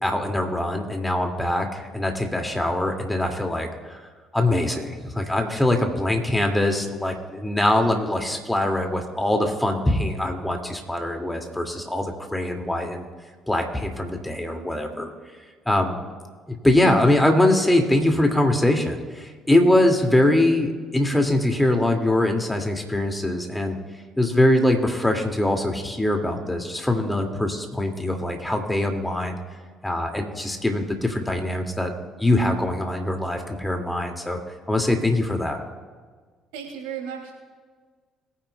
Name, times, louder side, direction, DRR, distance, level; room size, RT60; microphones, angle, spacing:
voice 1, 0.0-4.0 4.3-13.1 13.5-15.1 15.7-16.0 16.5-23.8 24.2-29.4 29.8-31.9 32.2-34.4 34.7-35.6, left 1 dB, 10° left, 3 dB, 2.2 m, -22 dB
voice 2, 36.5-37.3, right 8 dB, 70° right, 1 dB, 2.6 m, -34 dB
22.0 x 9.7 x 2.3 m, 1.5 s
figure-of-eight pair, 50°, 0 cm